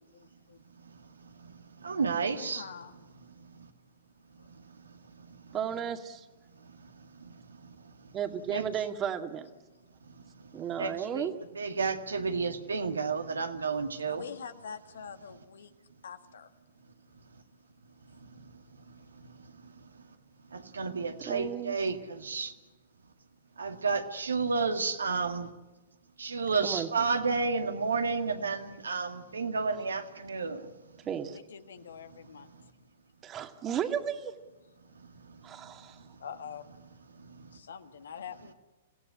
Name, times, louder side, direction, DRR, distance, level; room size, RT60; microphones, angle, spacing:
voice 1, 0.1-0.6 2.3-3.0 4.4-4.5 14.0-15.7 16.0-16.5 31.3-32.5 36.2-36.6 37.5-38.5, left 7 dB, 70° left, 9 dB, 1.7 m, -45 dB
voice 2, 1.8-2.7 8.5-8.6 10.8-11.3 11.5-14.3 20.5-22.5 23.6-25.5 26.2-30.7, right 4 dB, 80° right, 7 dB, 2.0 m, -31 dB
voice 3, 5.5-6.2 8.1-9.5 10.5-11.3 21.3-21.8 26.6-26.9 31.1-31.4 33.2-34.3 35.4-36.0, right 9 dB, 25° right, 7 dB, 2.1 m, -34 dB
26.5 x 16.5 x 9.8 m, 1.1 s
figure-of-eight pair, 110°, 0 cm